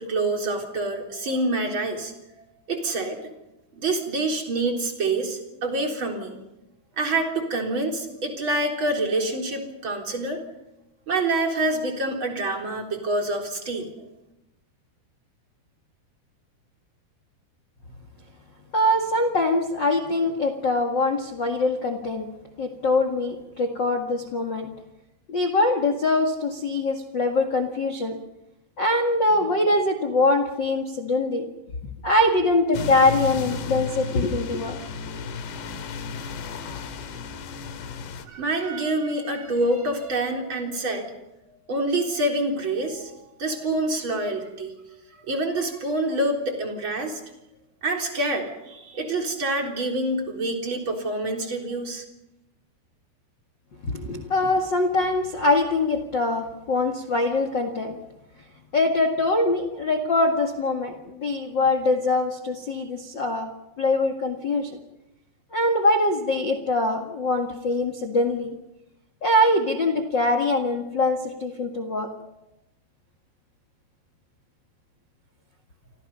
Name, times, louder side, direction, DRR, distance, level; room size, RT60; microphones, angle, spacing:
voice 1, 0.0-2.1 2.7-3.2 3.7-6.4 7.0-10.4 11.1-13.9 38.3-41.1 41.7-43.1 43.4-44.7 45.3-47.2 47.8-52.0, right 2 dB, 30° right, 2 dB, 3.9 m, -26 dB
voice 2, 18.7-22.3 22.6-24.7 25.3-28.2 28.8-31.5 32.0-34.8 53.8-58.0 58.7-63.5 63.8-64.8 65.5-68.5 69.2-72.1, left 2 dB, 85° left, 6 dB, 1.0 m, -23 dB
sound 1, 32.7-38.2, left 5 dB, 70° left, 4.0 m, -34 dB
29.5 x 25.0 x 5.6 m, 0.91 s
omnidirectional pair, 5.4 m